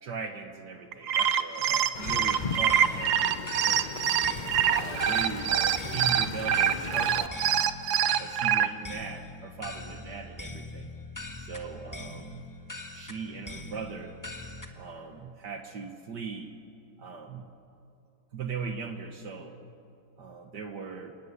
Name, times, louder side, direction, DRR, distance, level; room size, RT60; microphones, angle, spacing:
voice 1, 0.0-4.1 4.7-7.6 8.1-10.9 11.4-12.5 12.9-14.2 14.8-16.5 17.0-17.5 18.3-19.5 20.2-21.1, right 5 dB, 60° right, 5 dB, 1.9 m, -39 dB
sound 1, 0.9-8.7, right 9 dB, 80° right, 1.7 m, -25 dB
Wind, 1.9-7.3, left 5 dB, 55° left, 0.5 m, -38 dB
sound 2, 2.0-14.7, left 2 dB, 10° left, 1.4 m, -43 dB
28.0 x 17.5 x 9.7 m, 2.6 s
omnidirectional pair, 2.1 m